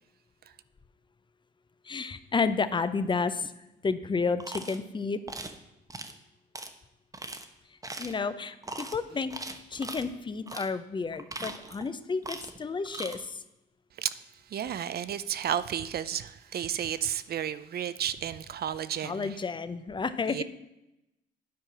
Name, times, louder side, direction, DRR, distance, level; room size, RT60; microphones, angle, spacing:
voice 1, 1.9-3.5 3.8-5.2 8.0-9.3 9.7-13.4 19.0-20.4, left 4 dB, 25° left, 0.6 m, -31 dB
sound 1, 4.4-4.8 5.3-5.6 5.9-6.1 6.5-6.7 7.1-7.4 7.8-8.2 8.6-9.0 9.3-10.1 10.5-10.7 11.1-11.9 12.2-12.6 12.9-13.2, right 2 dB, 15° right, 0.8 m, -40 dB
voice 2, 14.5-19.4 20.3-20.4, right 9 dB, 50° right, 0.5 m, -32 dB
9.5 x 4.7 x 5.9 m
cardioid pair, 90°, 20 cm